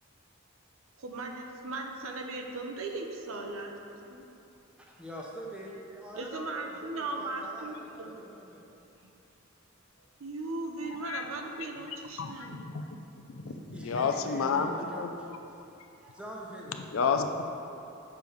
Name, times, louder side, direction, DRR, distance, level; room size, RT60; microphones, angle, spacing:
voice 1, 1.0-3.8 4.1-4.3 6.1-8.1 9.0-9.1 10.2-12.6, right 2 dB, 80° right, 3 dB, 0.7 m, -38 dB
voice 2, 4.8-8.6 13.7-15.4 16.0-16.8, equal, 5° right, -3 dB, 0.8 m, -44 dB
voice 3, 12.2-12.8 13.3-15.1 16.9-17.4, left 5 dB, 70° left, 6 dB, 0.5 m, -30 dB
6.7 x 5.3 x 4.5 m, 2.8 s
head